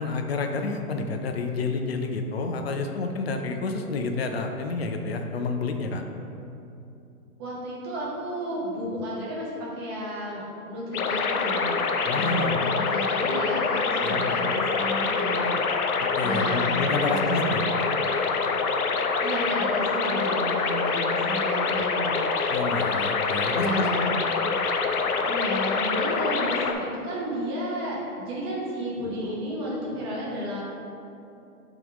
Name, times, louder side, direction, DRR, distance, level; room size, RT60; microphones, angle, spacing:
voice 1, 0.0-6.0 12.1-12.6 14.0-14.4 16.2-17.6 22.5-23.9, left 3 dB, 45° left, 4 dB, 0.5 m, -29 dB
voice 2, 7.4-11.7 12.1-15.5 16.2-17.6 19.2-22.1 23.5-24.1 25.2-30.6, equal, 15° right, -6 dB, 0.8 m, -32 dB
sound 1, 10.9-26.7, left 4 dB, 75° left, 0.7 m, -25 dB
8.9 x 3.7 x 3.6 m, 2.8 s
hypercardioid pair, 170°, 45 cm